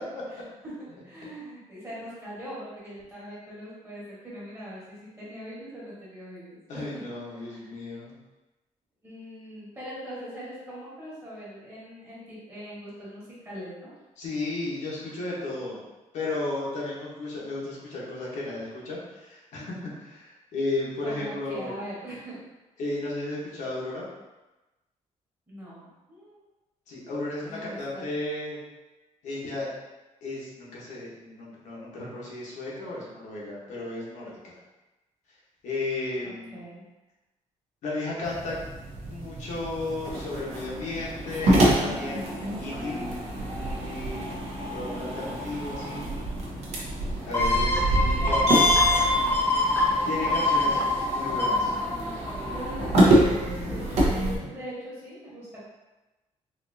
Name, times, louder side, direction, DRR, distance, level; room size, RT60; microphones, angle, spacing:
voice 1, 0.3-7.7 9.0-13.9 21.0-22.4 25.5-26.4 27.4-28.1 36.2-36.8 47.2-48.7 50.6-50.9 52.5-55.6, equal, 20° right, -9 dB, 1.4 m, -42 dB
voice 2, 6.7-8.1 14.2-15.8 16.1-21.8 22.8-24.1 26.9-28.6 29.2-29.7 30.2-34.6 35.6-36.6 37.8-38.6 39.1-43.0 43.6-44.3 44.7-46.0 47.3-48.4 50.0-50.8 51.0-51.7 54.4-54.5, left 2 dB, 70° left, -5 dB, 1.1 m, -34 dB
sound 1, 38.2-54.4, right 1 dB, 55° right, 0.8 m, -26 dB
sound 2, 47.3-52.8 53.3-53.4, left 2 dB, 15° left, 0.5 m, -25 dB
4.2 x 2.6 x 2.7 m, 1.1 s
cardioid pair, 170°, 13 cm